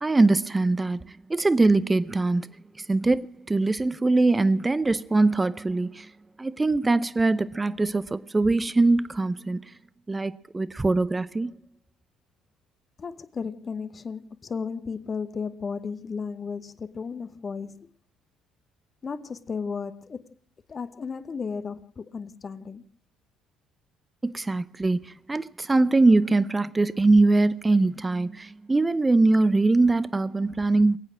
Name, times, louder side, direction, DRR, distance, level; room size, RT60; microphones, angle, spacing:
voice 1, 0.0-2.5 2.8-6.1 6.4-9.7 10.1-11.5 24.2-31.0, right 2 dB, 20° right, 0.7 m, -22 dB
voice 2, 13.0-17.9 19.0-20.2 20.7-22.9, left 5 dB, 35° left, 1.0 m, -34 dB
21.5 x 8.7 x 6.2 m
hypercardioid pair, 55°, 0 cm